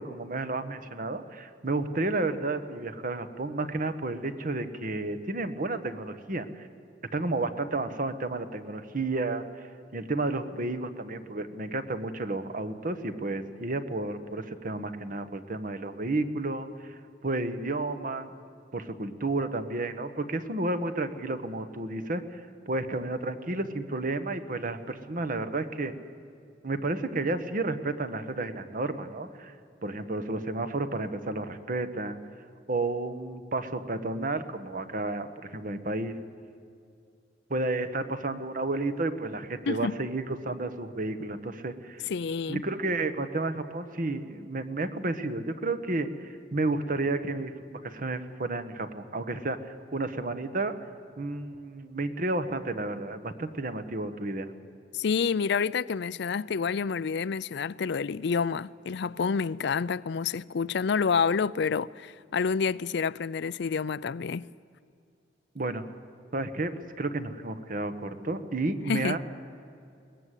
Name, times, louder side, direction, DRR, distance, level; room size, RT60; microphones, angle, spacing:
voice 1, 0.0-6.5 7.1-9.4 9.9-16.9 17.2-18.3 18.7-22.4 22.7-25.9 26.6-29.5 29.8-32.2 32.7-36.2 37.5-42.0 42.5-50.7 51.2-54.5 65.5-65.8 66.3-69.2, right 2 dB, 50° right, 1.3 m, -31 dB
voice 2, 42.1-42.6 54.9-64.5 68.9-69.2, left 5 dB, 65° left, 0.5 m, -28 dB
22.0 x 19.0 x 8.3 m
head